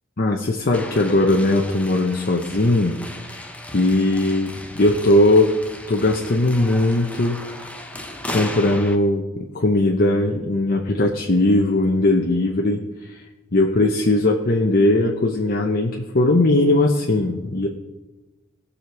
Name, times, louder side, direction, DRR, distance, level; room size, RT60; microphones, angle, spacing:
voice 1, 0.2-3.0 3.3-3.5 3.7-5.5 5.9-7.6 8.3-12.8 13.1-13.2 13.5-17.7, left 2 dB, 45° left, 1 dB, 0.9 m, -19 dB
sound 1, 0.7-9.0, left 1 dB, 5° left, 0.9 m, -36 dB
18.0 x 6.7 x 4.7 m, 1.1 s
head